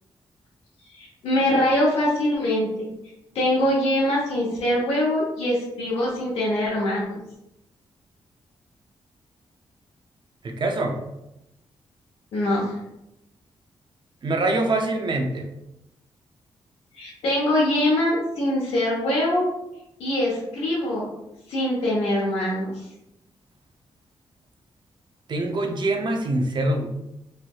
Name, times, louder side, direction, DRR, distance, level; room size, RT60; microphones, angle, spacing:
voice 1, 0.9-2.9 3.3-7.2 12.3-12.7 16.9-19.5 20.0-21.1 21.5-22.7, left 1 dB, 85° left, -5 dB, 0.8 m, -23 dB
voice 2, 10.4-11.0 14.2-15.5 25.3-26.9, right 2 dB, 50° right, 4 dB, 0.6 m, -24 dB
3.2 x 2.7 x 2.3 m, 0.86 s
cardioid pair, 80°, 10 cm